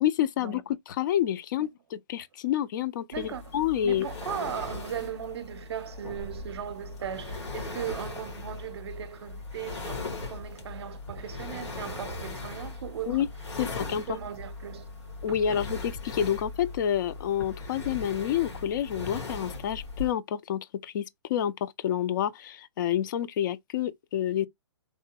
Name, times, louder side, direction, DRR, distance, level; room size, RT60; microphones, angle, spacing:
voice 1, 0.0-4.1 13.1-13.3 13.6-14.0 15.2-24.5, left 10 dB, 45° left, 0.4 m, -28 dB
sound 1, 3.1-20.1, left 3 dB, 75° left, 1.6 m, -39 dB
voice 2, 3.1-3.5 3.8-13.3 13.8-14.9 15.3-15.6, right 9 dB, 65° right, 0.6 m, -38 dB
3.1 x 2.1 x 2.8 m
hypercardioid pair, 140°, 15 cm